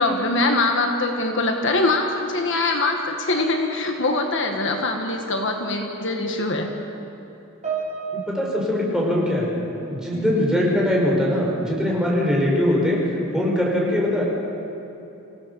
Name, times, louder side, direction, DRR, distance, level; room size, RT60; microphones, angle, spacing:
voice 1, 0.0-6.7 10.1-10.5, left 2 dB, 60° left, 3 dB, 1.7 m, -23 dB
Piano, 7.6-10.3 10.5-10.9 11.7-11.8, right 5 dB, 35° right, 5.7 m, -34 dB
voice 2, 8.3-9.5 9.9-14.2, left 1 dB, 5° right, -4 dB, 5.5 m, -21 dB
27.5 x 17.0 x 7.1 m, 3.0 s
head